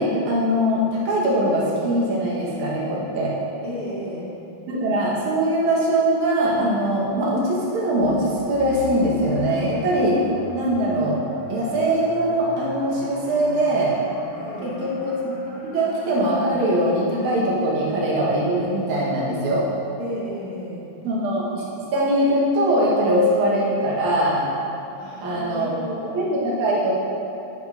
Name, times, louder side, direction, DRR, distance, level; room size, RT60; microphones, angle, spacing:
voice 1, 0.0-3.3 4.7-10.2 10.5-11.2 11.5-14.0 14.6-15.3 15.6-19.6 21.0-21.6 21.9-24.5 25.2-25.7 26.1-27.0, right 1 dB, 75° right, -6 dB, 2.7 m, -22 dB
voice 2, 3.6-4.3 14.3-14.8 20.0-20.9 24.9-26.2, equal, 50° left, -9 dB, 2.5 m, -33 dB
sound 1, 8.0-16.8, left 2 dB, 85° left, 2.5 m, -39 dB
9.1 x 8.3 x 2.7 m, 2.8 s
omnidirectional pair, 3.5 m